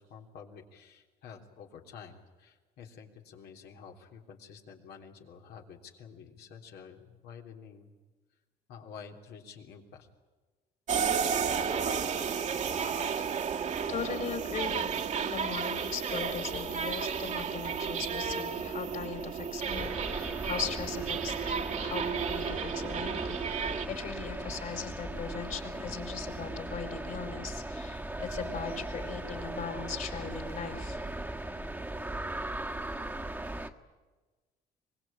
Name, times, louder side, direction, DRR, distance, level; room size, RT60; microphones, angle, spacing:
voice 1, 0.0-7.9 8.7-10.1, left 6 dB, 75° left, 3 dB, 3.4 m, -50 dB
sound 1, 10.9-23.9, right 6 dB, 45° right, 1.6 m, -32 dB
voice 2, 13.9-31.0, left 6 dB, 55° left, 6 dB, 4.8 m, -39 dB
sound 2, 19.7-33.7, right 1 dB, 10° right, 1.5 m, -38 dB
24.0 x 21.0 x 8.8 m, 1.3 s
cardioid pair, 110°, 17 cm